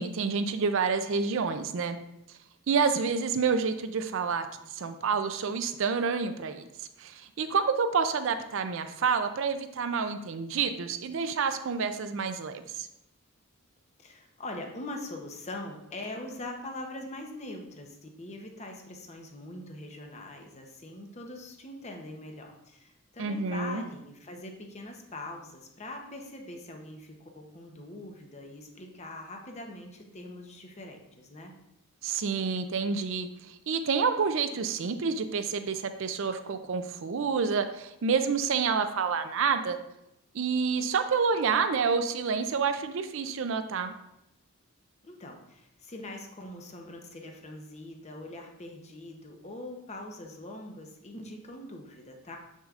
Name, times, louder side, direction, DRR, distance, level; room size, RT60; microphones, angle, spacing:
voice 1, 0.0-2.0 2.7-4.5 4.7-6.7 7.0-12.9 23.2-23.8 32.0-33.3 33.7-39.8 40.3-43.9, right 5 dB, 60° right, 9 dB, 0.4 m, -28 dB
voice 2, 14.0-31.6 45.0-52.4, left 2 dB, 30° left, 2 dB, 0.8 m, -42 dB
6.7 x 6.3 x 2.4 m, 0.84 s
head